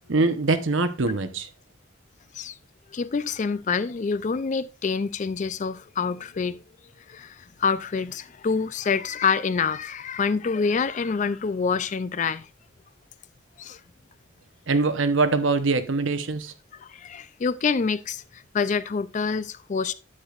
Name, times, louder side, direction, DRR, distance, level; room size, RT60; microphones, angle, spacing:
voice 1, 0.1-1.5 14.7-16.5, right 3 dB, 70° right, 0.9 m, -23 dB
voice 2, 2.9-6.6 7.1-12.5 13.6-13.8 16.7-19.9, left 5 dB, 35° left, 0.4 m, -27 dB
9.8 x 8.1 x 2.4 m
head